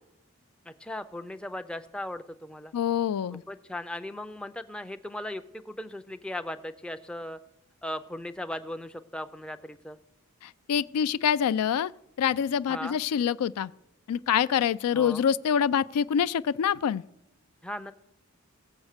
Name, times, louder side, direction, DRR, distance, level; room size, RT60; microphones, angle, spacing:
voice 1, 0.7-2.7 3.3-7.4 7.8-10.0 12.7-13.0 14.9-15.2 17.6-17.9, left 1 dB, 5° left, 0.4 m, -37 dB
voice 2, 2.7-3.4 10.7-11.9 12.2-13.7 14.1-17.0, left 8 dB, 90° left, 0.3 m, -25 dB
16.5 x 7.1 x 6.5 m
head